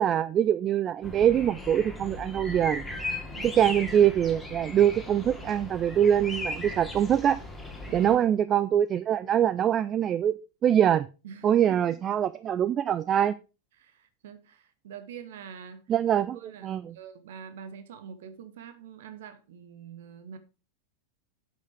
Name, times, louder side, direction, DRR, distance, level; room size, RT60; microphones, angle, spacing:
voice 1, 0.0-2.8 3.4-7.4 7.9-10.3 10.6-11.1 11.4-13.3 15.9-16.9, right 10 dB, 30° right, 0.4 m, -24 dB
sound 1, 1.0-8.2, left 2 dB, 5° left, 2.6 m, -38 dB
voice 2, 7.9-8.2 11.2-12.0 13.8-15.8 16.3-20.4, right 7 dB, 55° right, 1.3 m, -45 dB
8.1 x 8.0 x 4.9 m
figure-of-eight pair, 90°, 0 cm